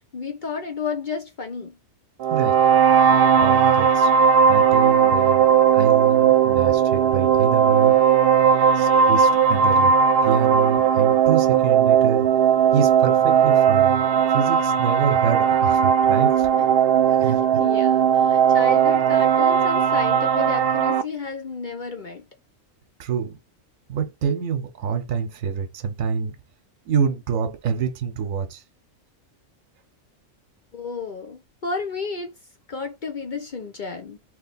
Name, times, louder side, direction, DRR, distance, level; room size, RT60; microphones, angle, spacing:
voice 1, 0.1-1.8 8.8-8.9 15.4-15.6 16.6-16.7 17.2-22.3 30.7-32.3 32.7-34.2, left 4 dB, 50° left, 0.6 m, -32 dB
sound 1, 2.2-21.0, right 7 dB, 65° right, 0.6 m, -17 dB
voice 2, 3.4-4.1 4.5-5.5 5.7-8.0 8.8-9.9 10.2-12.3 12.7-14.0 14.3-16.5 17.2-17.4 23.0-23.4 23.9-26.4 26.9-28.6, right 6 dB, 80° right, 1.1 m, -26 dB
3.2 x 2.9 x 4.0 m
omnidirectional pair, 1.4 m